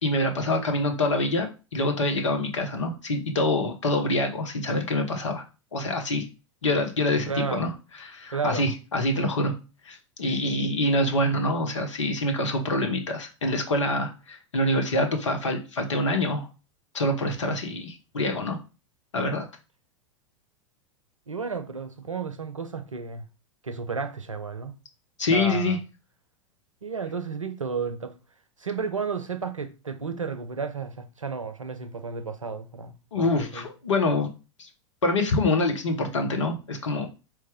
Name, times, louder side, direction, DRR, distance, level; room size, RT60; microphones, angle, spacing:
voice 1, 0.0-5.4 5.7-6.3 6.6-7.7 8.0-9.5 9.8-16.5 16.9-18.6 19.1-19.5 25.2-25.8 33.1-34.3 34.6-34.7 35.0-37.1, left 2 dB, 70° left, 1.0 m, -25 dB
voice 2, 7.3-7.7 8.3-8.6 21.3-23.2 23.6-24.7 25.3-25.8 26.8-28.2 28.6-33.7, right 5 dB, 85° right, 0.6 m, -32 dB
4.2 x 3.2 x 3.5 m
figure-of-eight pair, 90°, 16 cm